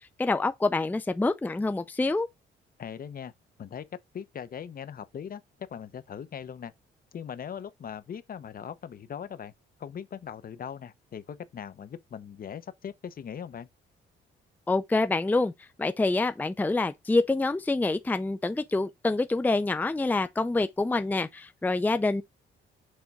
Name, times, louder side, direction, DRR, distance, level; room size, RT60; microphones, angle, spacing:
voice 1, 0.2-2.3 14.7-15.5 15.8-22.2, left 2 dB, 10° left, 0.5 m, -26 dB
voice 2, 2.8-3.3 3.6-5.4 5.7-6.7 7.1-9.5 9.8-13.7, left 8 dB, 45° left, 0.8 m, -40 dB
6.4 x 4.4 x 3.5 m
cardioid pair, 90°, 20 cm